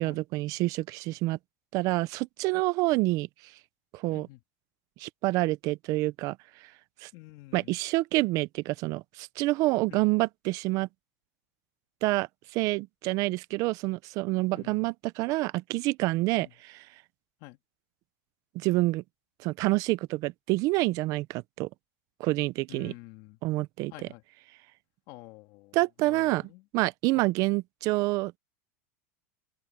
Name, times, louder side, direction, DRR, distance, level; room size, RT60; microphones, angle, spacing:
voice 1, 0.0-1.4 1.7-3.3 3.9-4.3 5.0-6.4 7.0-7.1 7.5-10.9 12.0-16.9 18.5-19.0 19.4-21.7 22.2-22.9 23.4-24.1 25.7-28.4, right 20 dB, 45° right, 0.7 m, -28 dB
voice 2, 4.1-4.4 7.1-7.7 9.9-10.0 14.5-14.9 16.4-16.5 17.4-17.6 22.7-23.4 23.9-24.2 25.1-26.6 27.1-27.3, left 20 dB, 50° left, 2.8 m, -49 dB
open air
supercardioid pair, 145°, 8 cm